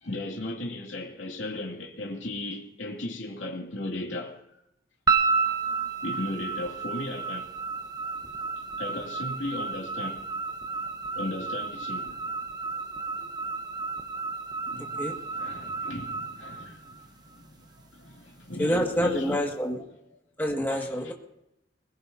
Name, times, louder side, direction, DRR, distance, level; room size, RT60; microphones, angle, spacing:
voice 1, 0.0-4.4 6.0-7.5 8.8-10.3 11.1-12.3 14.7-19.4 20.7-21.1, left 2 dB, 75° left, 2.5 m, -36 dB
sound 1, 5.1-17.4, right 4 dB, 20° right, 0.9 m, -31 dB
voice 2, 18.6-19.8 20.4-21.1, equal, 10° left, 1.9 m, -27 dB
22.0 x 20.0 x 2.8 m
head